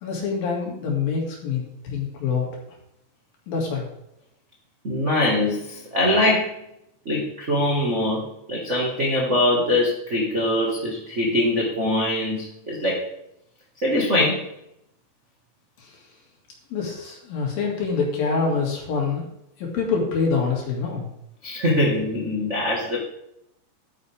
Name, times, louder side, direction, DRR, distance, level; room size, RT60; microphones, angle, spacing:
voice 1, 0.0-2.5 3.5-3.9 15.8-16.0 16.7-19.3 19.6-21.1, left 5 dB, 70° left, -1 dB, 4.1 m, -25 dB
voice 2, 4.8-6.5 7.0-8.2 8.5-13.0 13.8-14.4 21.4-23.0, left 1 dB, 40° right, -4 dB, 1.0 m, -22 dB
11.5 x 9.5 x 3.6 m, 0.79 s
omnidirectional pair, 4.4 m